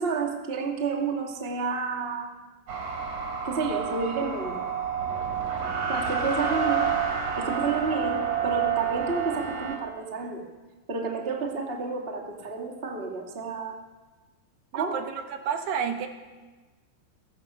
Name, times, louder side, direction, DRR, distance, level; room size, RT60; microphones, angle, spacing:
voice 1, 0.0-2.3 3.4-4.6 5.9-6.9 7.3-10.4 10.9-13.8 14.7-15.0, right 4 dB, 30° right, 1 dB, 1.0 m, -30 dB
sound 1, 2.7-9.8, right 7 dB, 45° right, 4.2 m, -29 dB
voice 2, 14.7-16.1, right 7 dB, 70° right, 6 dB, 3.1 m, -30 dB
29.5 x 16.5 x 6.3 m, 1.3 s
omnidirectional pair, 5.4 m